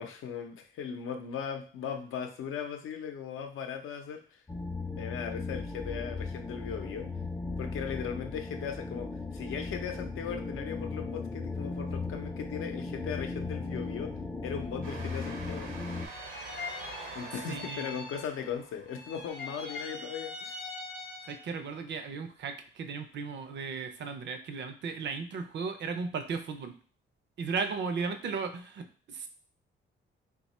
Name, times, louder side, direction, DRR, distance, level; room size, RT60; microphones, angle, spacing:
voice 1, 0.0-4.4 5.0-7.1 7.6-14.1 14.4-15.8 17.1-20.6, left 7 dB, 90° left, 5 dB, 0.6 m, -38 dB
sound 1, 4.5-16.1, left 3 dB, 10° left, 0.3 m, -37 dB
Train, 14.8-21.0, right 3 dB, 85° right, 1.0 m, -47 dB
sound 2, 16.0-18.6 18.9-21.6, left 3 dB, 50° left, 0.7 m, -43 dB
voice 2, 17.5-17.9 21.2-26.7 27.4-29.3, right 5 dB, 60° right, 8 dB, 0.5 m, -36 dB
2.8 x 2.3 x 4.1 m, 0.42 s
cardioid pair, 120°, 21 cm